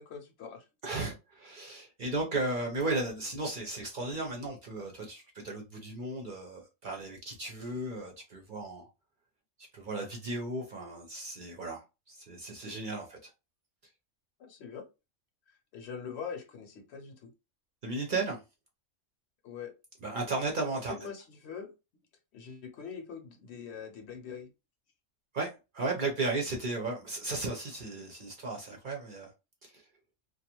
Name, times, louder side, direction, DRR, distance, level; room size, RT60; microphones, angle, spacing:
voice 1, 0.0-0.7 14.4-14.9 15.5-17.3 19.4-19.7 20.9-21.7 22.3-24.5, left 6 dB, 65° left, 0.8 m, -43 dB
voice 2, 0.8-8.9 9.7-13.3 17.8-18.4 20.0-21.0 25.3-29.3 29.6-29.8, right 2 dB, 50° right, 0.6 m, -35 dB
2.4 x 2.3 x 2.8 m
omnidirectional pair, 1.3 m